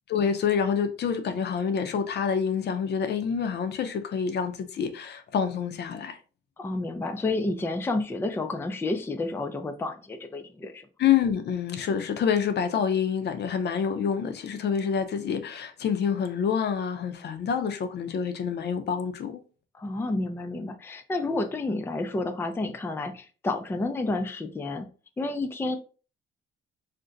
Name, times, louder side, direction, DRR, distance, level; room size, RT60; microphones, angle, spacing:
voice 1, 0.1-6.2 11.0-19.4, left 7 dB, 60° left, 0.6 m, -27 dB
voice 2, 6.6-10.9 19.7-24.9 25.2-25.8, left 2 dB, 10° left, 0.4 m, -30 dB
2.5 x 2.1 x 3.8 m
cardioid pair, 90°, 20 cm